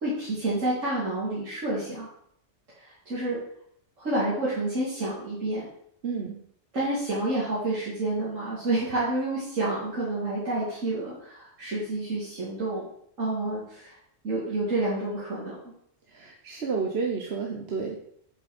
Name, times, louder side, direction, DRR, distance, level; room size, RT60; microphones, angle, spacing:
voice 1, 0.0-2.1 2.8-3.4 4.0-5.7 6.7-12.8 13.2-14.0 14.2-15.6, right 2 dB, 85° right, -9 dB, 3.2 m, -29 dB
voice 2, 6.0-6.4 16.1-18.0, right 5 dB, 55° right, 0 dB, 1.3 m, -30 dB
8.2 x 6.9 x 4.4 m, 0.66 s
omnidirectional pair, 1.3 m